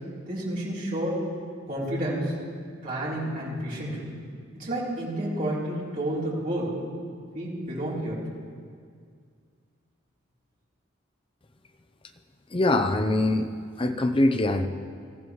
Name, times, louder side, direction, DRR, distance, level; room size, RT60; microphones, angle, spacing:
voice 1, 0.3-1.3 1.7-2.3 2.8-4.1 4.5-6.8 7.3-8.2, right 1 dB, 45° right, -7 dB, 3.6 m, -30 dB
voice 2, 12.5-13.5 13.8-14.7, left 2 dB, 25° left, 8 dB, 0.6 m, -23 dB
18.0 x 14.5 x 3.2 m, 2.1 s
head